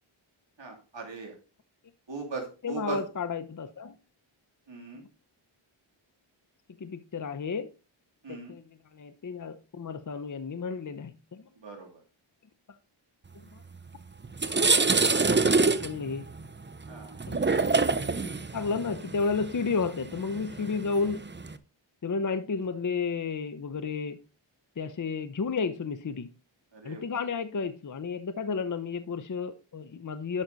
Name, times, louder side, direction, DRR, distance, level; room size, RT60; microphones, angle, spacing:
voice 1, 0.6-1.3 2.1-3.0 4.7-5.0 8.2-8.5 11.6-11.9 16.9-17.2 26.7-27.0, right 4 dB, 60° right, 2.9 m, -39 dB
voice 2, 2.6-3.9 6.8-7.7 8.3-8.6 8.9-11.4 13.3-13.6 15.8-16.2 17.3-17.5 18.5-21.2 22.0-24.2 24.8-26.3 26.8-30.4, left 5 dB, 40° left, 0.7 m, -32 dB
sound 1, 13.7-13.9 14.2-21.5, right 3 dB, 25° right, 0.7 m, -26 dB
12.0 x 6.0 x 4.0 m
wide cardioid pair, 70°, 49 cm